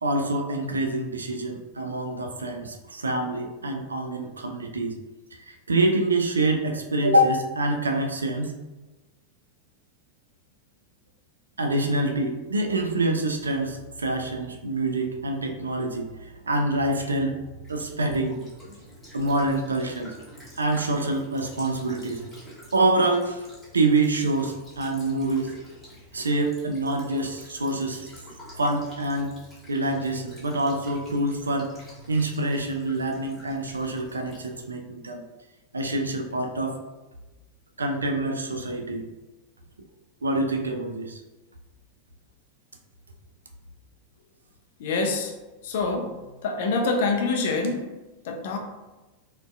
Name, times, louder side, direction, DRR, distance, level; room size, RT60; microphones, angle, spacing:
voice 1, 0.0-4.9 5.5-8.5 11.6-17.4 17.7-18.8 19.1-20.1 20.6-22.2 22.7-23.4 23.7-25.5 26.1-28.1 28.6-29.3 29.7-31.7 32.1-35.2 35.7-36.8 37.8-39.0 40.2-41.2, right 2 dB, 75° right, 4 dB, 0.3 m, -26 dB
Child speech kid speaking / Bird vocalization bird call bird song / Stream, 17.6-34.6, equal, 5° left, 1.4 m, -48 dB
voice 2, 44.8-45.3 45.6-47.9 48.2-48.6, left 3 dB, 55° left, 3 dB, 0.4 m, -26 dB
3.9 x 2.2 x 2.3 m, 1.1 s
figure-of-eight pair, 90°, 0 cm